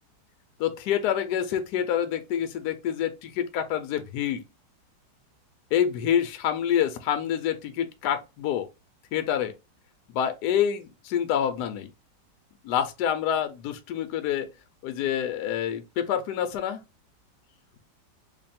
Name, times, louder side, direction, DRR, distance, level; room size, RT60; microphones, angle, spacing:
voice 1, 0.6-4.4 5.7-8.7 9.1-9.5 10.1-11.9 12.6-14.5 14.8-16.8, left 9 dB, 75° left, 1.1 m, -27 dB
3.2 x 2.2 x 4.2 m
omnidirectional pair, 1.9 m